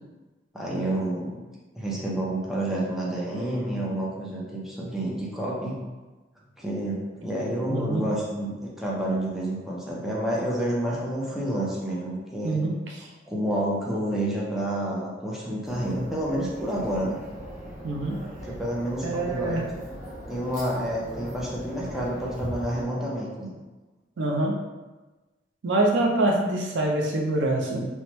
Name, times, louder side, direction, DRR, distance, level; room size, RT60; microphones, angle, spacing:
voice 1, 0.5-1.4 1.7-5.8 6.6-12.6 13.3-17.2 18.4-20.0 20.3-23.5, right 1 dB, ahead, -6 dB, 0.5 m, -29 dB
voice 2, 7.7-8.1 12.4-12.8 17.8-18.2 19.0-19.6 24.2-24.6 25.6-27.8, right 2 dB, 75° right, 0 dB, 0.5 m, -25 dB
sound 1, 15.6-22.8, equal, 40° right, 0.7 m, -40 dB
2.9 x 2.2 x 3.0 m, 1.2 s
head